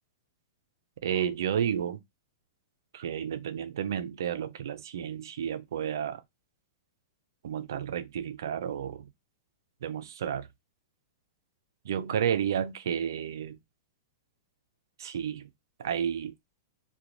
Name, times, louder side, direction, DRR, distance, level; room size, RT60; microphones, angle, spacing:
voice 1, 1.0-2.0 2.9-6.2 7.4-9.1 9.8-10.5 11.8-13.6 15.0-15.5 15.8-16.3, right 9 dB, 75° right, 0.5 m, -31 dB
2.5 x 2.3 x 2.9 m
hypercardioid pair, 150°, 2 cm